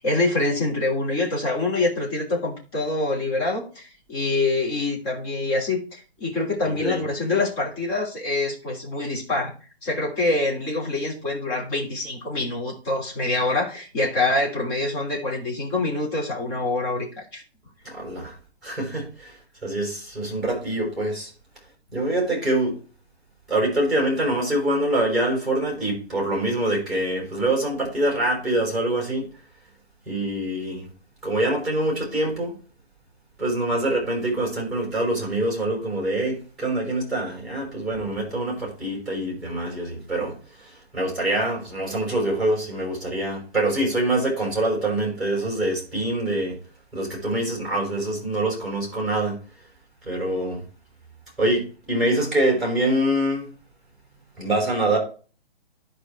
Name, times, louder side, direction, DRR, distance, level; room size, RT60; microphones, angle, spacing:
voice 1, 0.0-9.5 9.8-17.4, left 2 dB, 25° left, 3.2 m, -25 dB
voice 2, 6.6-7.0 17.8-18.3 18.6-21.3 21.9-22.7 23.5-29.3 30.1-30.9 31.2-32.6 33.4-46.6 46.9-49.4 50.1-50.6 51.4-53.5 54.4-55.0, right 1 dB, ahead, 5.6 m, -25 dB
11.5 x 4.9 x 4.8 m
hypercardioid pair, 160°, 32 cm